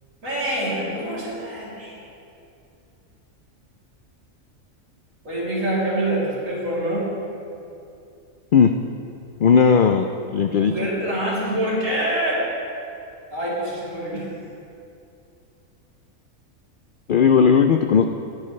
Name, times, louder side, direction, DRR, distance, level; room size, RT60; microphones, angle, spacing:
voice 1, 0.2-2.0 5.2-7.1 10.5-12.4 13.3-14.3, right 1 dB, 70° right, -7 dB, 3.6 m, -25 dB
voice 2, 9.4-10.1 10.3-10.7 17.1-18.0, left 6 dB, 70° left, 6 dB, 0.5 m, -16 dB
20.5 x 10.5 x 3.2 m, 2.6 s
omnidirectional pair, 1.4 m